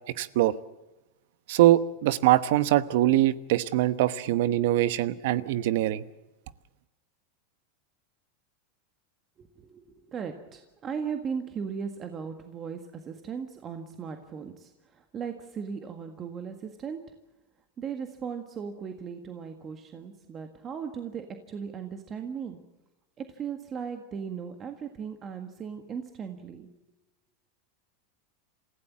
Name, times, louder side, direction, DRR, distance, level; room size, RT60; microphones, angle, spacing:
voice 1, 0.1-0.5 1.5-6.0, right 14 dB, 65° right, 15 dB, 1.0 m, -23 dB
voice 2, 9.4-17.0 17.8-22.6 23.2-26.7, right 6 dB, 25° right, 6 dB, 1.7 m, -37 dB
27.5 x 16.0 x 7.5 m, 1.0 s
supercardioid pair, 150°, 0 cm